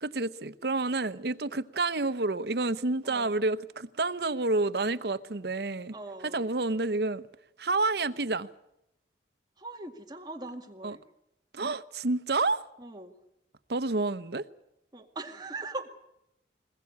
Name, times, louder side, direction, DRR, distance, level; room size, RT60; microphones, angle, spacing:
voice 1, 0.0-5.9 6.2-7.3 7.6-8.5 10.8-11.0 11.5-12.6 13.7-14.5, right 3 dB, 65° right, 0.8 m, -29 dB
voice 2, 5.9-6.5 9.6-11.0 12.8-13.2 14.9-15.9, right 2 dB, 20° right, 2.0 m, -41 dB
22.0 x 20.5 x 8.5 m
head